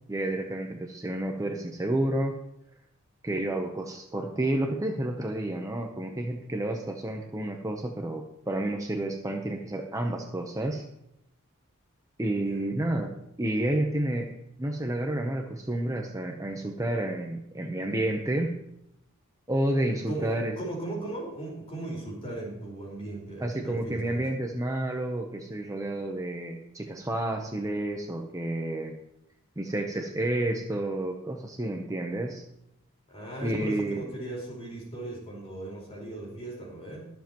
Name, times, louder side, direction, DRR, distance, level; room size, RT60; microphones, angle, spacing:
voice 1, 0.1-2.4 3.2-10.8 12.2-13.1 13.4-14.3 14.6-18.6 19.5-20.6 23.4-28.9 29.6-32.4 33.4-34.0, right 1 dB, 15° right, 2 dB, 0.8 m, -30 dB
voice 2, 20.1-24.2 33.1-37.1, right 2 dB, 30° left, -3 dB, 4.8 m, -37 dB
22.0 x 7.5 x 3.1 m, 0.82 s
head